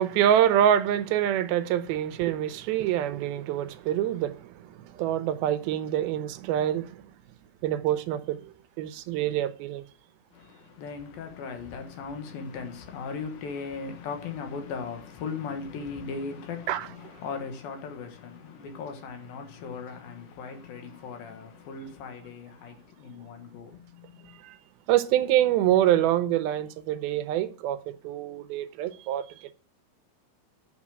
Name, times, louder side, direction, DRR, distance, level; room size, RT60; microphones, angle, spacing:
voice 1, 0.0-7.0 7.6-9.8 16.7-16.9 24.4-24.6 24.9-29.5, right 11 dB, 80° right, 2.4 m, -26 dB
voice 2, 10.3-24.4, left 5 dB, 70° left, 3.2 m, -38 dB
8.4 x 6.9 x 7.3 m
omnidirectional pair, 4.4 m